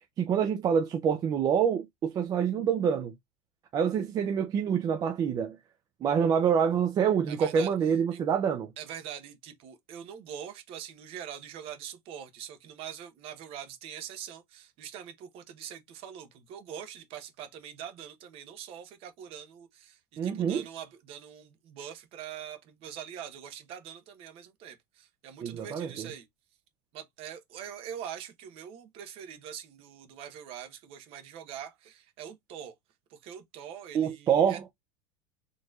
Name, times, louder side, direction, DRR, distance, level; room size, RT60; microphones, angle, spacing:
voice 1, 0.2-3.1 3.7-5.6 6.0-8.7 20.2-20.6 25.4-26.1 33.9-34.6, right 7 dB, 25° right, 0.4 m, -26 dB
voice 2, 7.3-7.7 8.1-8.2 8.8-26.3 26.9-32.8 33.1-34.7, right 9 dB, 45° right, 1.0 m, -43 dB
4.4 x 3.0 x 2.3 m
supercardioid pair, 140°, 13 cm